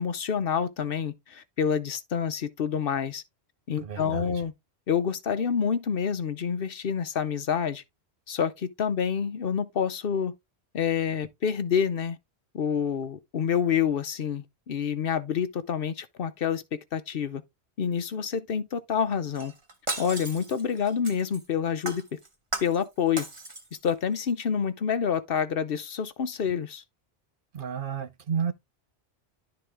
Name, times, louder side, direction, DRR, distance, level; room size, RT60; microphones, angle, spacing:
voice 1, 0.0-3.2 3.7-4.5 4.9-7.8 8.3-10.3 10.7-12.2 12.5-17.4 17.8-19.5 20.0-22.2 22.6-23.3 23.8-26.8, left 7 dB, 65° left, 0.9 m, -28 dB
voice 2, 3.8-4.2 27.5-28.5, right 7 dB, 60° right, 0.9 m, -31 dB
Shatter, 19.3-21.5 21.9-22.9 23.2-23.9 24.3-24.4, right 2 dB, 30° right, 1.4 m, -36 dB
11.5 x 3.9 x 3.4 m
omnidirectional pair, 1.1 m